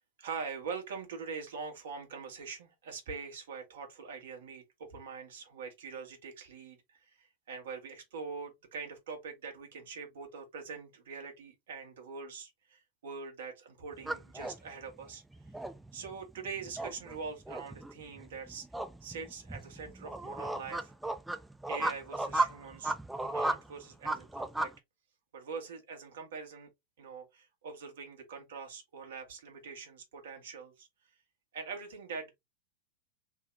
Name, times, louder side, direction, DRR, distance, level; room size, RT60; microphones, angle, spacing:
voice 1, 0.2-15.2 15.9-18.6 19.0-20.9 21.7-23.0 23.3-24.7 25.3-26.7 27.0-30.9 31.5-32.3, right 5 dB, 65° right, 1.6 m, -43 dB
sound 1, 13.9-24.7, right 2 dB, 5° right, 0.5 m, -35 dB
3.7 x 2.8 x 3.6 m
figure-of-eight pair, 95°, 0 cm